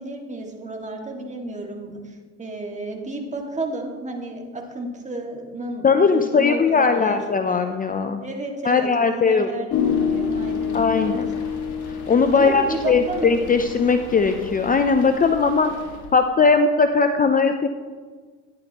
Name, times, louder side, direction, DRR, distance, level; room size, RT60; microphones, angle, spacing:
voice 1, 0.0-5.9 6.1-7.2 8.2-11.2 12.3-13.3, right 2 dB, 20° right, 1 dB, 2.1 m, -32 dB
voice 2, 5.8-8.2 8.6-9.5 10.7-11.3 11.9-15.7 16.1-17.7, left 5 dB, 25° left, 7 dB, 0.6 m, -19 dB
sound 1, 9.7-16.1, left 6 dB, 65° left, 1.9 m, -28 dB
12.5 x 10.5 x 3.0 m, 1.5 s
supercardioid pair, 85°, 32 cm